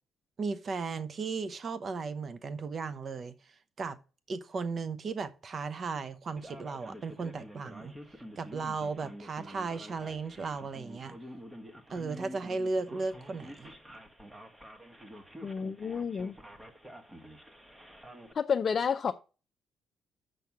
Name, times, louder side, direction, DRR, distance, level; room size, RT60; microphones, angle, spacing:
voice 1, 0.4-4.0 4.3-8.0 8.4-11.2 11.9-13.7, right 4 dB, 45° right, 0.9 m, -36 dB
Male speech man speaking, 6.4-18.3, equal, 15° right, 1.6 m, -48 dB
voice 2, 15.4-16.4 18.3-19.1, left 6 dB, 45° left, 0.6 m, -30 dB
6.7 x 6.2 x 7.2 m
cardioid pair, 90°, 0 cm